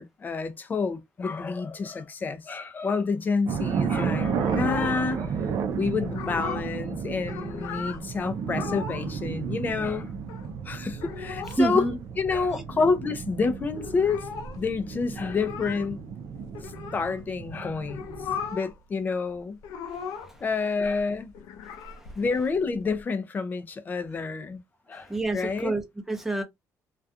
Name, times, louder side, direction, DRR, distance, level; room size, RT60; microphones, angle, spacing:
voice 1, 0.0-5.4 5.8-10.1 10.7-11.9 12.2-14.3 14.6-16.0 16.9-18.1 18.5-19.6 20.4-21.3 22.2-24.6 24.9-25.7, left 4 dB, 30° left, 0.4 m, -28 dB
sound 1, 3.4-18.5, right 6 dB, 60° right, 0.4 m, -33 dB
sound 2, 4.3-5.3 5.6-5.7 6.0-6.8 7.1-8.0 8.5-9.1 9.4-9.5 9.7-10.5 10.9-11.7 12.0-12.1 12.3-12.9 13.2-13.3 13.5-17.2 17.8-18.8 19.0-20.4 20.8-23.0, left 6 dB, 90° left, 0.4 m, -38 dB
voice 2, 11.6-12.0 12.5-12.6 19.9-20.3 21.8-21.9 25.0-26.4, right 2 dB, 5° right, 0.7 m, -28 dB
2.4 x 2.2 x 2.6 m
cardioid pair, 135°, 6 cm